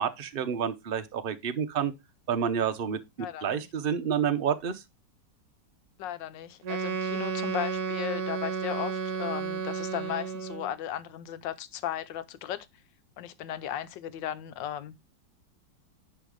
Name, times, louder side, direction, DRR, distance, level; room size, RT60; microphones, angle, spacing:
voice 1, 0.0-1.9 2.3-4.8, right 8 dB, 45° right, 0.7 m, -29 dB
voice 2, 3.2-3.7 6.0-12.7 13.2-15.0, left 11 dB, 85° left, 1.5 m, -36 dB
Wind instrument woodwind instrument, 6.6-10.7, right 6 dB, 65° right, 1.3 m, -32 dB
10.5 x 3.5 x 4.8 m
omnidirectional pair, 2.0 m